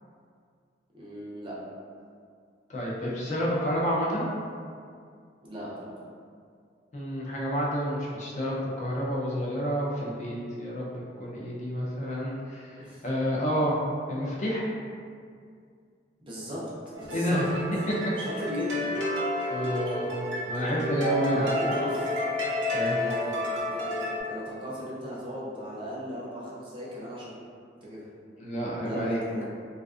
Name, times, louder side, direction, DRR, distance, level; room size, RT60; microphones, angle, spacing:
voice 1, 0.9-1.5 5.4-5.9 12.8-13.0 16.2-16.6 16.9-17.4 18.2-18.8 21.3-22.1 22.9-27.3 27.8-28.1 28.8-29.4, equal, 30° right, -7 dB, 0.5 m, -37 dB
voice 2, 2.7-4.3 6.9-13.8 14.1-14.7 17.1-17.4 17.9-18.0 19.5-20.1 20.5-21.5 22.7-23.0 28.4-29.2, equal, 40° left, -5 dB, 0.4 m, -29 dB
sound 1, 16.9-24.2, left 1 dB, 80° right, 0.5 m, -31 dB
2.4 x 2.3 x 2.4 m, 2.2 s
head